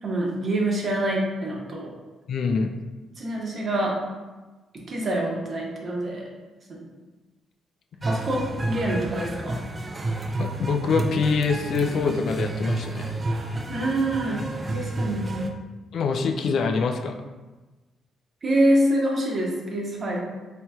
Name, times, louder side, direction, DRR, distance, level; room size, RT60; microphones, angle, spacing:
voice 1, 0.0-1.9 3.2-3.9 4.9-6.2 8.0-9.6 13.7-15.4 18.4-20.2, right 1 dB, 45° right, -2 dB, 0.9 m, -25 dB
voice 2, 2.3-2.7 8.0-8.1 10.3-13.1 15.9-17.2, left 5 dB, 65° left, 4 dB, 0.3 m, -25 dB
sound 1, 8.0-15.5, right 2 dB, 25° right, 0.3 m, -30 dB
4.2 x 2.9 x 2.3 m, 1.2 s
cardioid pair, 90°, 0 cm